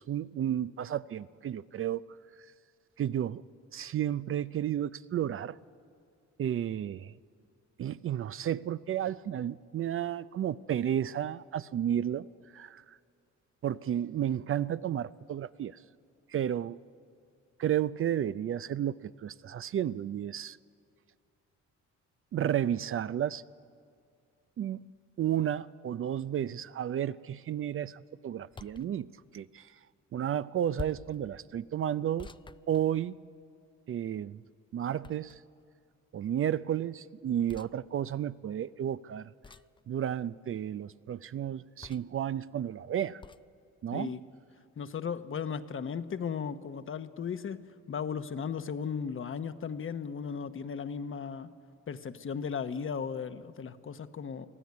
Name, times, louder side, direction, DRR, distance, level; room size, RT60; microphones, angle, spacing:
voice 1, 0.0-2.0 3.0-3.4 3.7-5.6 6.4-7.1 7.8-12.2 12.5-12.8 13.6-15.8 16.3-16.8 17.6-20.6 22.3-23.4 24.6-24.9 25.2-29.7 30.1-32.3 32.7-33.2 33.9-34.4 34.7-35.4 36.1-39.3 39.9-43.2 43.8-44.1, right 10 dB, 45° right, 16 dB, 0.5 m, -32 dB
sound 1, 28.5-28.9 30.8-31.2 32.2-33.4 35.0-35.6 37.5-37.7 39.4-39.8 41.8-42.2 43.2-43.5, left 4 dB, 15° left, 0.4 m, -46 dB
voice 2, 44.8-47.6 47.9-51.5 51.9-54.5, left 6 dB, 45° left, 11 dB, 1.0 m, -36 dB
23.5 x 15.5 x 9.5 m, 2.2 s
cardioid pair, 90°, 30 cm